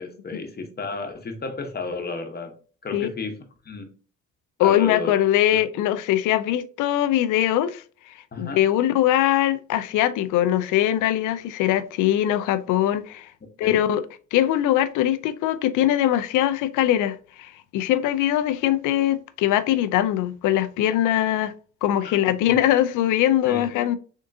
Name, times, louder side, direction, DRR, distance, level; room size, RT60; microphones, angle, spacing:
voice 1, 0.0-2.5 2.8-3.4 3.6-3.9 4.6-5.1 5.5-5.6 8.3-8.6 13.6-13.8 22.0-22.2 23.4-23.7, left 4 dB, 35° left, 1.0 m, -32 dB
voice 2, 4.6-7.8 8.4-13.3 13.6-14.0 14.3-21.5 21.8-24.0, left 12 dB, 90° left, 0.5 m, -21 dB
3.6 x 3.6 x 2.6 m
cardioid pair, 90°, 30 cm